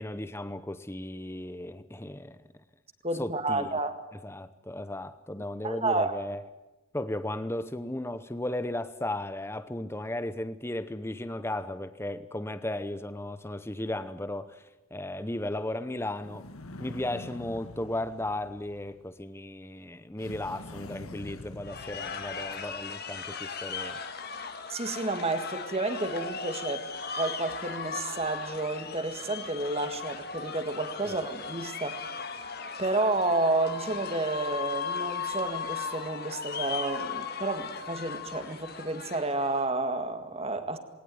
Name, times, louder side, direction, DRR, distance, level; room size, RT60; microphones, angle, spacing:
voice 1, 0.0-2.5 3.2-3.8 4.2-6.4 6.9-14.6 14.9-16.5 16.8-24.0 31.0-31.2, left 1 dB, 10° left, 0.8 m, -35 dB
voice 2, 3.0-3.9 5.6-6.2 24.7-26.8 27.2-32.4 32.8-40.8, right 2 dB, 25° right, 1.9 m, -30 dB
sound 1, 16.2-19.3 20.2-22.9, left 2 dB, 75° left, 1.7 m, -46 dB
sound 2, 21.6-39.7, left 5 dB, 45° left, 1.8 m, -37 dB
20.5 x 18.5 x 9.5 m
head